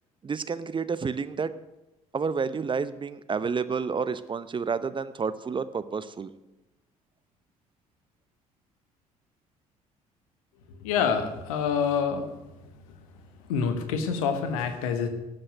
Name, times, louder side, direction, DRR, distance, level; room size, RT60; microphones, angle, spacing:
voice 1, 0.2-1.5 2.1-6.3, right 5 dB, 25° right, 14 dB, 0.8 m, -30 dB
voice 2, 10.8-12.3 13.5-15.1, left 6 dB, 70° left, 8 dB, 1.5 m, -26 dB
12.0 x 7.8 x 9.0 m, 1.0 s
figure-of-eight pair, 50°, 18 cm